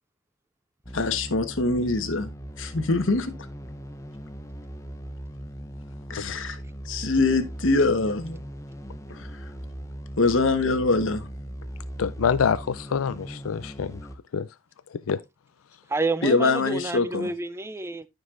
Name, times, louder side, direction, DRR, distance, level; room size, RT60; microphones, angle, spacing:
sound 1, 0.8-14.2, equal, 15° left, 0.7 m, -39 dB
voice 1, 0.9-2.3 2.6-3.3 6.1-6.6 6.9-8.4 9.1-9.3 10.2-11.3 16.2-17.3, left 3 dB, 65° left, 1.2 m, -23 dB
voice 2, 12.0-14.0 14.3-14.5 14.9-15.2, left 6 dB, 80° left, 0.4 m, -26 dB
voice 3, 15.9-18.1, right 2 dB, 10° right, 0.4 m, -29 dB
13.0 x 5.3 x 2.5 m
head